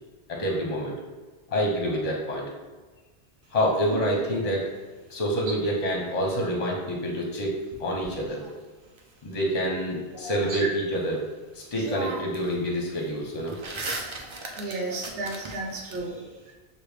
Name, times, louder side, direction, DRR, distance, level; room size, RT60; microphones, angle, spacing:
voice 1, 0.3-0.9 1.5-2.5 3.5-4.7 5.1-7.5 7.8-8.4 9.2-11.2 11.5-13.6 16.1-16.2, equal, 40° left, 0 dB, 0.8 m, -27 dB
sound 1, 7.7-9.0 11.2-11.3 11.7-12.5 12.8-16.0, right 3 dB, 40° right, 0.4 m, -37 dB
voice 2, 10.1-10.7 14.5-16.5, right 3 dB, 65° right, -1 dB, 1.0 m, -33 dB
6.4 x 2.2 x 3.4 m, 1.3 s
omnidirectional pair, 1.1 m